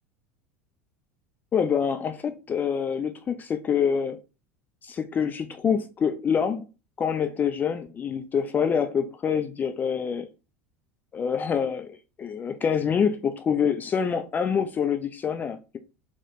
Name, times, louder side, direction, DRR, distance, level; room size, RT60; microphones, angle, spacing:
voice 1, 1.5-4.2 4.8-6.7 7.0-10.3 11.1-15.8, left 7 dB, 25° left, 0.4 m, -26 dB
4.0 x 3.0 x 3.9 m
figure-of-eight pair, 75°, 7 cm